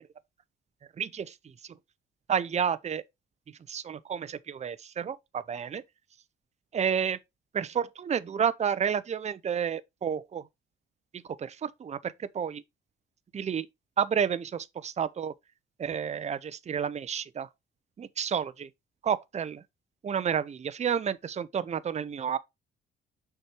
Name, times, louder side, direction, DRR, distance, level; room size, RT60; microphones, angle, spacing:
voice 1, 1.0-1.3 2.3-3.0 3.7-5.8 6.7-7.2 7.5-10.4 11.4-12.6 13.3-13.7 14.0-15.3 15.8-17.5 18.0-18.7 19.0-19.6 20.0-22.4, right 7 dB, 35° right, 0.6 m, -30 dB
6.5 x 4.9 x 4.4 m
cardioid pair, 90°, 20 cm